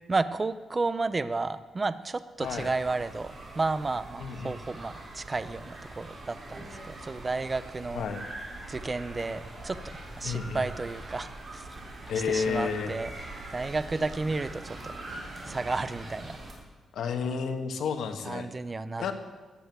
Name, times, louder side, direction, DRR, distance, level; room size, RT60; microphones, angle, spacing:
voice 1, 0.1-8.0 8.7-11.7 12.3-13.1 13.5-14.9 15.4-16.4 18.2-19.1, right 3 dB, 20° right, 13 dB, 0.5 m, -32 dB
sound 1, 2.4-16.5, right 2 dB, 40° right, 3.5 m, -43 dB
voice 2, 4.2-4.6 7.9-8.2 10.2-10.6 12.1-12.9 16.9-18.5 19.0-19.1, left 6 dB, 85° left, 7 dB, 1.3 m, -31 dB
14.5 x 7.8 x 8.0 m, 1.3 s
wide cardioid pair, 155°, 0 cm